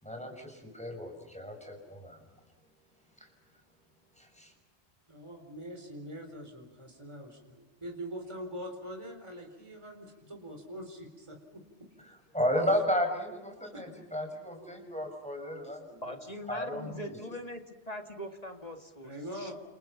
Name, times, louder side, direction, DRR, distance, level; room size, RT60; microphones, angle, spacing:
voice 1, 0.0-2.2 3.2-3.3 4.2-4.3 12.0-16.0 16.5-17.2, equal, 5° left, 3 dB, 6.2 m, -33 dB
voice 2, 5.1-11.6 16.7-16.9 19.0-19.5, equal, 25° right, 3 dB, 4.3 m, -43 dB
voice 3, 16.0-19.5, equal, 35° left, 5 dB, 2.2 m, -42 dB
30.0 x 28.5 x 5.9 m, 1.1 s
omnidirectional pair, 1.1 m